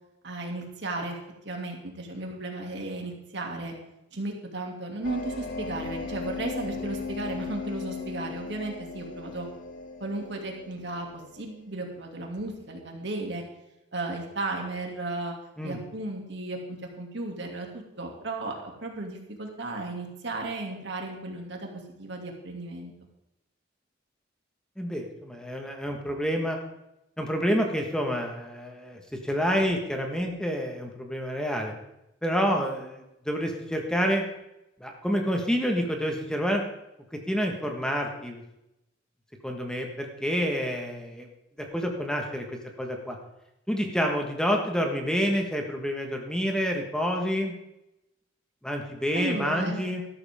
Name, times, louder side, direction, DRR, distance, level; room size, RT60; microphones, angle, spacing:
voice 1, 0.2-1.2 1.4-3.7 4.1-9.5 10.0-13.4 13.9-15.3 15.6-22.9 49.1-49.8, right 2 dB, 70° right, 1 dB, 2.6 m, -35 dB
sound 1, 5.0-11.6, left 4 dB, 50° left, 1.2 m, -37 dB
voice 2, 24.8-26.6 27.2-31.7 32.2-34.2 34.8-36.6 37.1-38.4 39.4-41.3 41.7-42.4 42.8-43.1 43.7-47.5 48.6-50.0, equal, 5° left, 2 dB, 1.5 m, -28 dB
13.0 x 13.0 x 3.7 m, 0.89 s
head